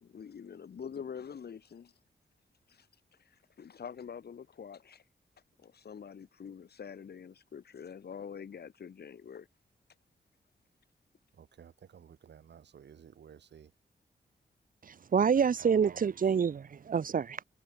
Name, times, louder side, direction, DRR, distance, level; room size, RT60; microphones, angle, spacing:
voice 1, 0.0-1.9 2.7-5.0 5.6-9.5, left 7 dB, 65° left, 1.4 m, -46 dB
voice 2, 11.3-13.7 15.3-16.1, right 8 dB, 85° right, 4.7 m, -53 dB
voice 3, 14.8-17.4, right 7 dB, 50° right, 0.7 m, -27 dB
cardioid pair, 60°, 18 cm